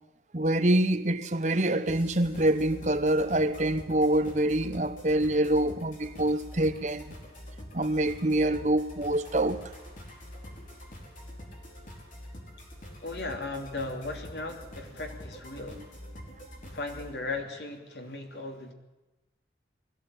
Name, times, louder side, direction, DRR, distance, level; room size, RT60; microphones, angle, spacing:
voice 1, 0.3-7.0 7.7-9.6 15.8-15.9, right 1 dB, 40° right, 1.0 m, -26 dB
sound 1, 1.9-17.1, equal, 45° left, 4.4 m, -45 dB
voice 2, 13.0-15.9 16.7-18.7, left 3 dB, 75° left, 3.1 m, -37 dB
21.0 x 15.0 x 8.9 m
head